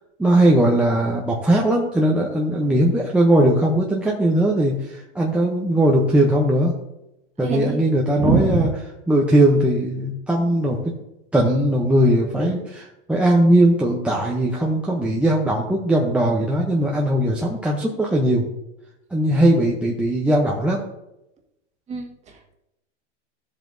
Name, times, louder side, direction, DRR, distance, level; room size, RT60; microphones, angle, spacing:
voice 1, 0.2-6.7 7.4-8.7 9.1-10.8 11.3-18.4 19.1-20.8, right 1 dB, 5° right, -3 dB, 0.7 m, -19 dB
voice 2, 7.4-7.8 8.2-8.7 21.9-22.5, right 3 dB, 20° right, 2 dB, 1.5 m, -23 dB
14.0 x 7.7 x 2.6 m, 0.88 s
supercardioid pair, 145°, 35 cm